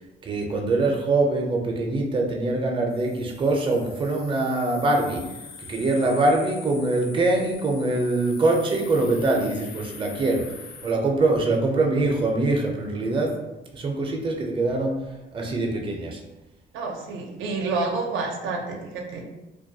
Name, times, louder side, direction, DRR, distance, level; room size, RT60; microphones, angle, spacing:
voice 1, 0.2-5.3 5.6-10.6 10.8-13.4 13.7-15.0 15.3-16.2, right 2 dB, 25° right, 1 dB, 0.4 m, -23 dB
sound 1, 2.9-10.9, left 5 dB, 50° left, 0.4 m, -44 dB
voice 2, 16.7-19.2, right 3 dB, 80° right, 1 dB, 0.5 m, -29 dB
2.2 x 2.2 x 2.6 m, 1.0 s
cardioid pair, 90°, 20 cm